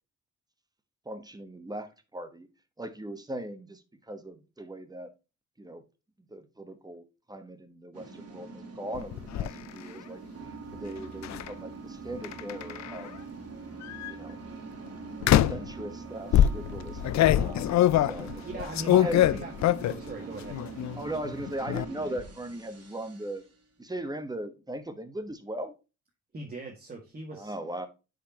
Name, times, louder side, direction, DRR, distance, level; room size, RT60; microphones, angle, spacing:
voice 1, 1.0-2.5 2.8-5.1 5.6-5.8 6.3-10.2 10.7-13.1 14.1-14.4 15.1-17.0 17.3-19.2 21.0-23.4 23.8-25.7 27.3-27.9, right 1 dB, 15° right, 1.2 m, -39 dB
sound 1, 7.9-23.6, right 4 dB, 55° right, 2.6 m, -43 dB
sound 2, 8.9-9.5 11.2-11.5 12.2-13.1 13.8-14.1 15.2-15.7 16.3-20.1 20.4-21.0 21.3-21.9, left 12 dB, 70° left, 0.5 m, -24 dB
voice 2, 18.4-19.5 19.8-20.6 26.3-27.5, right 2 dB, 30° right, 1.9 m, -40 dB
10.0 x 5.1 x 2.9 m
cardioid pair, 100°, 30 cm